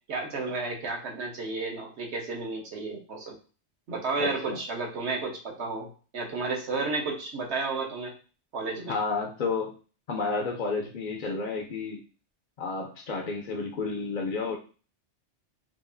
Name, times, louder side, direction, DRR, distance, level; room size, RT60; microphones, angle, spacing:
voice 1, 0.1-3.4 3.9-8.1 8.5-8.9, right 3 dB, 65° right, 0 dB, 1.2 m, -32 dB
voice 2, 4.2-4.6 8.9-9.7 10.1-12.0 12.6-14.6, left 4 dB, 55° left, 2 dB, 0.5 m, -31 dB
4.6 x 2.4 x 2.5 m, 0.37 s
omnidirectional pair, 1.2 m